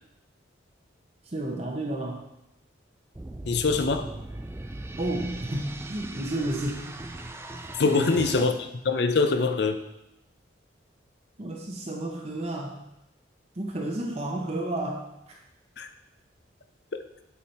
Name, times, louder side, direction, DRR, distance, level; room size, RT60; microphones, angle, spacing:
voice 1, 1.2-2.2 5.0-6.9 7.8-8.5 11.4-12.9 13.5-15.4, right 1 dB, 35° right, 0 dB, 0.7 m, -32 dB
sound 1, 3.1-8.4, right 2 dB, 15° right, 0.3 m, -39 dB
voice 2, 3.4-4.1 7.8-8.5 8.9-9.8 15.8-15.9, left 4 dB, 60° left, 9 dB, 0.6 m, -23 dB
8.6 x 4.6 x 4.2 m, 0.88 s
head